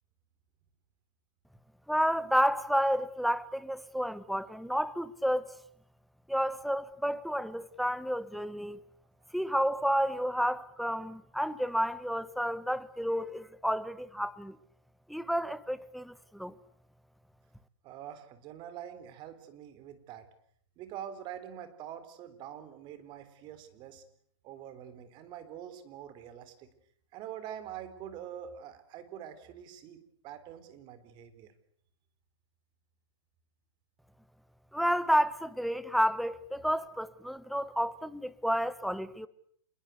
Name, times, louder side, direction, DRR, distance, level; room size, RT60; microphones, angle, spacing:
voice 1, 1.9-5.5 6.3-8.8 9.3-14.6 15.1-16.5 34.7-39.3, equal, ahead, 1.1 m, -30 dB
voice 2, 17.8-20.3 20.8-24.0 24.4-26.7 27.1-31.5, right 10 dB, 30° right, 3.8 m, -45 dB
27.5 x 22.0 x 8.2 m
hypercardioid pair, 135°, 15 cm